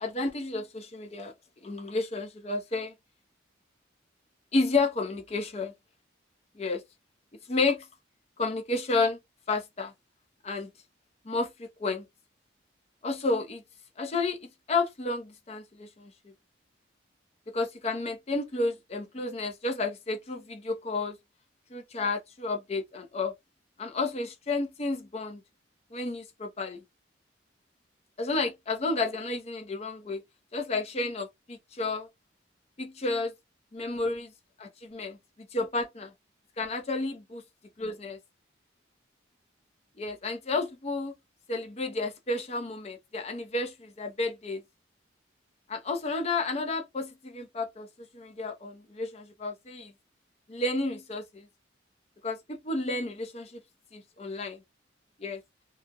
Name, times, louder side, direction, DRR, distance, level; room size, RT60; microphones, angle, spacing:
voice 1, 0.0-1.3 1.6-2.9 4.5-5.7 6.6-6.8 7.5-7.9 8.4-9.2 9.5-9.9 10.4-10.7 11.2-12.1 13.0-13.6 14.0-16.1 17.5-21.2 21.7-23.3 23.8-25.4 25.9-26.8 28.2-30.2 30.5-32.1 32.8-33.3 33.7-34.3 34.6-36.1 36.6-37.4 37.8-38.2 40.0-41.1 41.5-44.6 45.7-47.9 48.1-49.9 50.5-51.5 52.2-53.6 53.9-54.6 55.2-55.4, left 3 dB, 35° left, 0.5 m, -31 dB
2.3 x 2.0 x 2.7 m
head